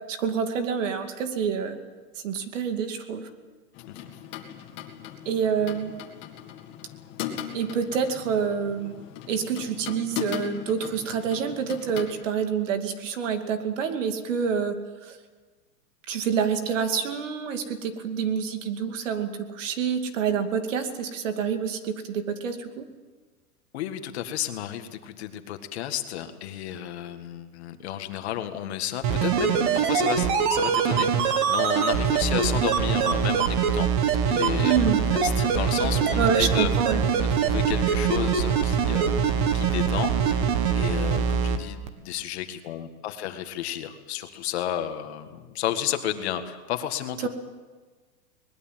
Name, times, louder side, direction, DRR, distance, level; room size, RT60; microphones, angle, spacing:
voice 1, 0.1-1.8 2.2-3.3 5.3-5.9 7.5-8.9 9.3-14.7 15.0-15.2 16.1-22.9 34.6-35.0 36.1-37.1 47.2-47.3, right 7 dB, 55° right, 7 dB, 2.5 m, -27 dB
sound 1, 3.7-12.1, left 10 dB, 25° left, 2.1 m, -38 dB
voice 2, 23.7-33.9 34.3-34.7 35.1-36.7 37.3-40.5 40.8-47.3, left 11 dB, 45° left, 7 dB, 1.9 m, -32 dB
sound 2, 29.0-41.6 41.9-42.0, right 7 dB, 35° right, 1.7 m, -23 dB
22.5 x 20.5 x 7.6 m, 1.4 s
hypercardioid pair, 165°, 46 cm